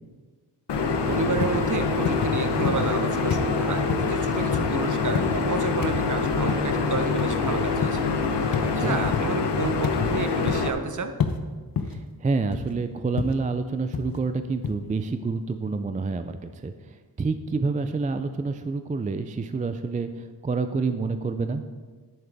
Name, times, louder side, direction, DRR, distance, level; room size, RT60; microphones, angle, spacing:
sound 1, 0.7-10.7, left 4 dB, 85° left, 1.0 m, -25 dB
voice 1, 1.1-8.0 8.7-11.1, right 5 dB, 50° right, 8 dB, 0.8 m, -30 dB
sound 2, 1.4-1.6 2.0-2.3 2.6-3.0 3.3-3.5 3.9-4.1 4.5-4.8 5.1-5.4 5.8-6.0 6.5-6.7 7.2-7.4 7.8-8.1 8.5-8.7 9.1-9.3 9.8-10.1 10.5-10.8 11.2-11.4 11.8-12.0 12.5-12.7 13.2-13.4 13.9-14.2 14.6-14.7, left 6 dB, 55° left, 0.8 m, -29 dB
voice 2, 8.6-9.0 11.8-21.6, right 4 dB, 20° right, 9 dB, 0.3 m, -28 dB
10.5 x 8.7 x 3.4 m, 1.4 s
wide cardioid pair, 140°, 41 cm